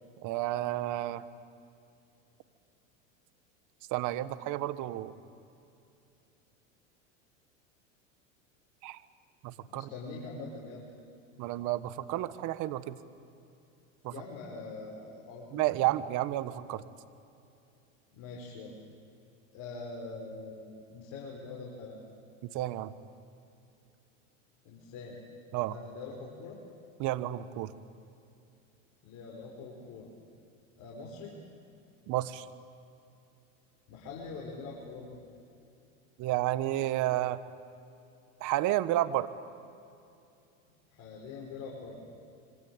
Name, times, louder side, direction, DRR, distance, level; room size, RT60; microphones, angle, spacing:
voice 1, 0.2-1.2 3.9-5.1 8.8-9.0 9.4-9.9 11.4-13.0 14.0-14.1 15.5-16.8 22.5-22.9 25.5-25.8 27.0-27.7 32.1-32.4 36.2-37.4 38.4-39.3, right 15 dB, 50° right, 14 dB, 1.3 m, -31 dB
voice 2, 9.7-10.9 14.1-15.7 18.1-18.8 19.5-22.0 24.6-25.2 25.7-26.6 29.0-30.1 30.8-31.3 33.9-35.1 40.9-42.0, left 3 dB, 50° left, -3 dB, 5.3 m, -43 dB
26.5 x 25.0 x 9.0 m, 2.6 s
supercardioid pair, 115°, 39 cm